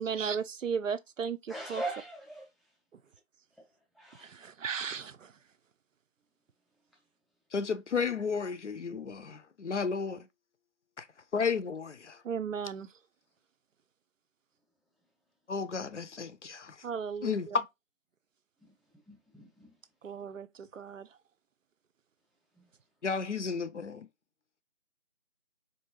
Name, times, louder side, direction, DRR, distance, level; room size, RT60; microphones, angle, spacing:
voice 1, 0.0-1.8 2.9-3.0 4.2-5.4 12.2-12.9 16.8-17.6 20.0-21.2, right 6 dB, 70° right, 0.5 m, -36 dB
voice 2, 1.5-2.5 4.0-4.4 18.6-18.7 19.1-19.7 22.6-22.7, right 2 dB, ahead, 0.5 m, -40 dB
voice 3, 7.5-10.3 11.0-11.1 11.3-12.2 15.5-16.8 17.2-17.5 23.0-24.1, left 5 dB, 60° left, 0.5 m, -33 dB
4.6 x 2.6 x 2.9 m
figure-of-eight pair, 175°, 40 cm